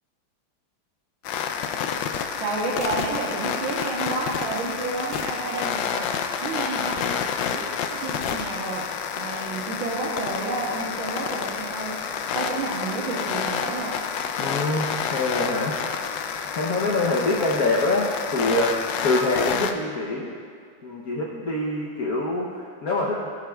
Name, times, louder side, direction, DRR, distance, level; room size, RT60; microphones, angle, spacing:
sound 1, 1.2-19.7, left 7 dB, 75° left, 1.2 m, -29 dB
voice 1, 2.4-6.1 6.4-7.0 7.5-7.6 7.9-8.8 9.2-11.9 12.3-13.9 19.5-19.7, right 3 dB, 80° right, -4 dB, 1.9 m, -30 dB
voice 2, 14.4-16.2 16.5-20.3 20.8-23.3, left 2 dB, 55° left, -4 dB, 1.2 m, -25 dB
17.5 x 7.3 x 2.3 m, 2.2 s
omnidirectional pair, 2.2 m